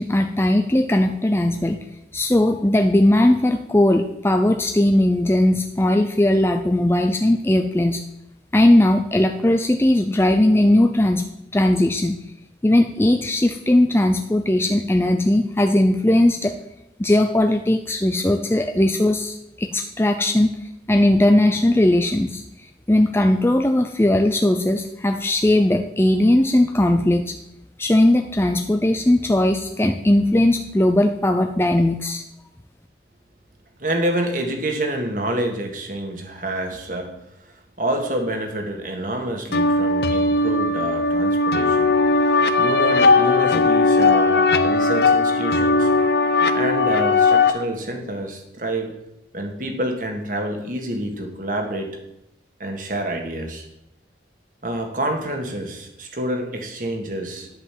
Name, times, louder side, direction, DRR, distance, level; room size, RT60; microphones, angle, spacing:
voice 1, 0.0-1.8 2.1-8.0 8.5-11.2 11.5-12.1 12.6-16.6 17.0-20.6 20.9-27.3 27.8-32.2, left 1 dB, 15° left, 5 dB, 0.5 m, -18 dB
voice 2, 33.8-37.1 37.4-41.9 42.6-45.9 46.5-48.9 49.3-51.9 52.6-53.7 54.6-57.5, right 1 dB, 45° right, 4 dB, 1.7 m, -27 dB
sound 1, 39.5-47.5, left 3 dB, 60° left, 0.7 m, -18 dB
11.0 x 5.4 x 7.5 m, 0.83 s
head